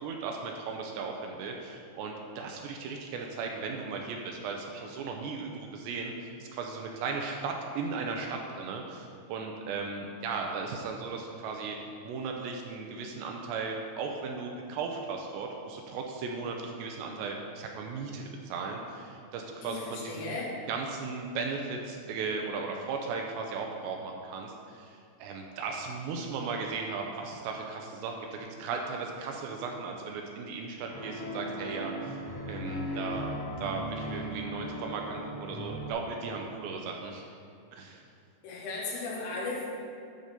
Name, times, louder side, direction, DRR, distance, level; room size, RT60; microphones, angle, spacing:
voice 1, 0.0-11.8 12.0-20.3 20.7-32.2 32.5-33.3 33.6-37.2 37.7-38.0, right 4 dB, 80° right, 1 dB, 2.5 m, -36 dB
voice 2, 19.6-20.5 38.4-39.7, left 3 dB, 85° left, -4 dB, 4.1 m, -36 dB
sound 1, 30.9-35.9, equal, 50° left, 2.9 m, -37 dB
10.5 x 4.2 x 6.6 m, 2.5 s
omnidirectional pair, 5.6 m